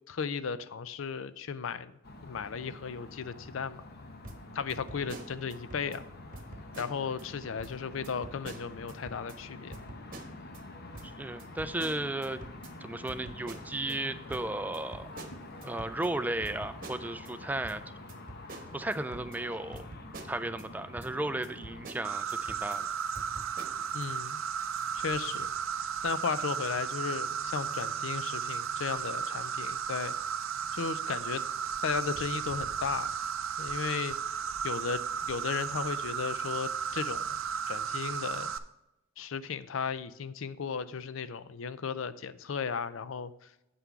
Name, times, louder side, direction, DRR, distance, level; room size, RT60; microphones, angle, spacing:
voice 1, 0.1-3.8 4.5-6.0 6.8-9.8 23.9-24.4 24.9-25.5 26.0-30.2 30.7-31.4 31.8-33.1 33.6-34.4 34.6-37.4 37.7-38.5 39.2-43.3, left 6 dB, 70° left, 15 dB, 0.5 m, -35 dB
sound 1, 2.0-21.9, left 2 dB, 50° left, 1.0 m, -47 dB
sound 2, 4.2-6.0 6.3-7.2 7.6-7.7 8.0-9.4 9.7-10.6 10.9-14.0 14.3-17.3 17.6-20.7 21.0-21.1 21.4-22.8 23.1-24.0, right 2 dB, 45° right, 1.1 m, -47 dB
voice 2, 11.2-12.4 12.8-15.1 15.6-17.8 18.7-19.9 20.3-22.9, right 2 dB, 10° right, 12 dB, 0.3 m, -34 dB
Insect, 22.0-38.6, right 7 dB, 80° right, 0.5 m, -34 dB
8.2 x 5.9 x 4.5 m, 0.91 s
head